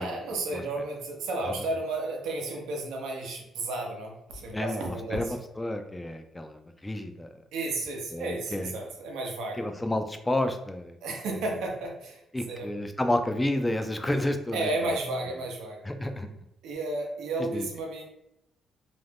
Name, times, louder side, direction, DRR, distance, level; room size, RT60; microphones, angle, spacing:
voice 1, 0.0-5.3 7.5-9.6 11.0-12.2 12.5-12.7 14.5-15.8 16.6-18.1, right 2 dB, 85° right, 1 dB, 0.7 m, -32 dB
voice 2, 4.5-7.3 8.1-8.7 9.6-11.0 11.3-11.4 12.3-14.7 15.8-16.3 17.4-17.7, left 1 dB, 15° left, 7 dB, 0.3 m, -30 dB
2.5 x 2.1 x 3.3 m, 0.82 s
cardioid pair, 90°, 0 cm